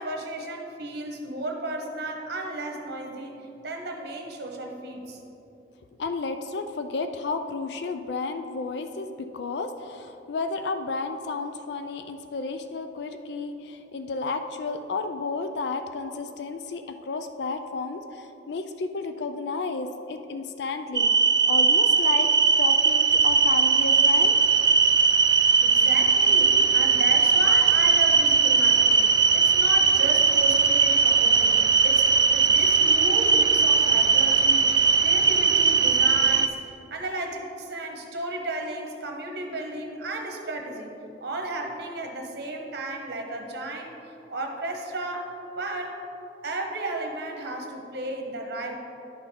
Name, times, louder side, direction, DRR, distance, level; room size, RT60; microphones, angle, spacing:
voice 1, 0.0-3.4 3.6-5.2 25.6-31.6 31.8-36.6 36.9-40.9 41.2-46.0 46.4-48.8, right 2 dB, 60° right, 2 dB, 1.1 m, -34 dB
voice 2, 6.0-21.1 21.5-22.3 22.6-24.4, left 4 dB, 65° left, 8 dB, 0.4 m, -32 dB
sound 1, 21.0-36.5, right 5 dB, 20° right, 0.3 m, -19 dB
10.5 x 5.7 x 4.2 m, 2.9 s
head